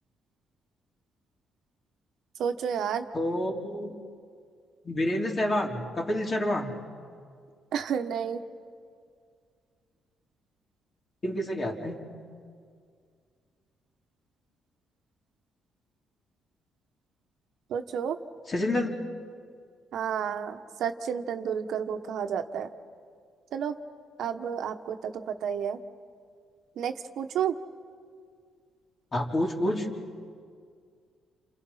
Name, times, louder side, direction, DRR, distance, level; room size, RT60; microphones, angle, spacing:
voice 1, 2.4-3.1 7.7-8.4 17.7-18.2 19.9-22.7 23.5-23.8 24.2-25.8 26.8-27.5, right 8 dB, 75° right, 7 dB, 1.2 m, -31 dB
voice 2, 3.1-4.0 4.8-6.7 11.2-12.0 18.5-18.9 29.1-29.9, left 1 dB, 35° left, 0 dB, 3.7 m, -28 dB
29.0 x 28.0 x 5.7 m, 2.1 s
cardioid pair, 90°, 0 cm